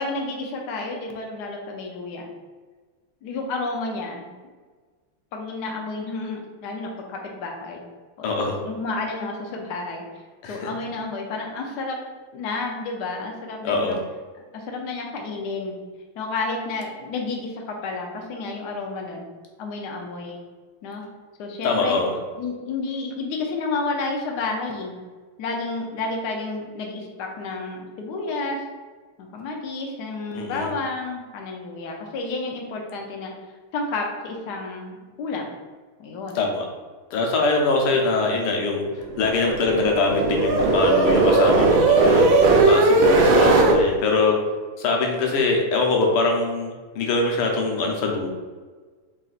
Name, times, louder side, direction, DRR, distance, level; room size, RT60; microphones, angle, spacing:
voice 1, 0.0-2.3 3.2-4.3 5.3-7.8 8.2-8.3 8.6-10.0 10.5-12.0 12.3-14.0 14.5-15.7 16.2-19.3 19.6-20.4 20.8-21.0 21.4-22.0 22.4-24.9 25.4-28.6 29.2-33.3 33.7-35.5 36.0-36.4, left 3 dB, 70° left, 1 dB, 1.0 m, -30 dB
voice 2, 8.2-8.6 10.4-10.7 13.6-14.0 21.6-22.1 30.3-30.7 36.3-36.7 37.1-38.8 39.2-42.2 42.6-44.4 44.8-48.3, left 3 dB, 85° left, 1 dB, 1.7 m, -23 dB
sound 1, 39.1-43.8, right 3 dB, 75° right, 1.3 m, -18 dB
4.1 x 3.9 x 2.4 m, 1.4 s
omnidirectional pair, 2.4 m